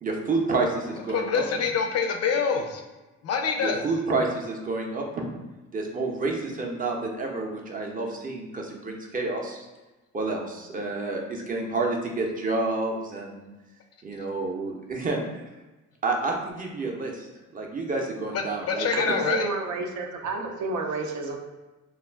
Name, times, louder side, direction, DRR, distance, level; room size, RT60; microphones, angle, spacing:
voice 1, 0.0-1.4 3.6-5.3 5.7-9.7 10.1-13.4 14.0-15.2 16.0-17.3 17.5-19.2, right 3 dB, 30° right, 0 dB, 0.6 m, -29 dB
voice 2, 1.1-2.8 3.2-3.9 18.3-19.5, left 5 dB, 55° left, 3 dB, 0.4 m, -26 dB
voice 3, 18.9-21.4, right 3 dB, 75° right, 3 dB, 0.5 m, -30 dB
2.3 x 2.3 x 3.3 m, 1.1 s
cardioid pair, 90°, 30 cm